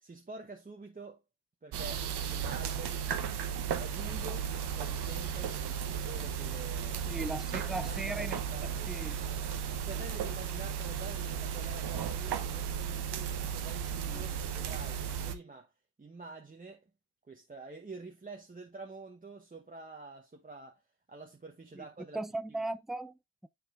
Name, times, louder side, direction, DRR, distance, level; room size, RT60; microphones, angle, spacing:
voice 1, 0.0-1.2 1.6-3.1 3.8-4.5 4.7-7.0 7.8-9.4 9.8-15.7 16.0-16.8 17.3-20.8 21.1-22.2, right 3 dB, 20° right, 1.1 m, -47 dB
sound 1, 1.7-15.3, right 8 dB, 60° right, 1.0 m, -35 dB
voice 2, 7.1-8.4 8.9-9.2 14.1-14.3 21.8-21.9 22.1-23.5, right 2 dB, ahead, 0.3 m, -38 dB
9.2 x 4.3 x 2.5 m
hypercardioid pair, 50°, 46 cm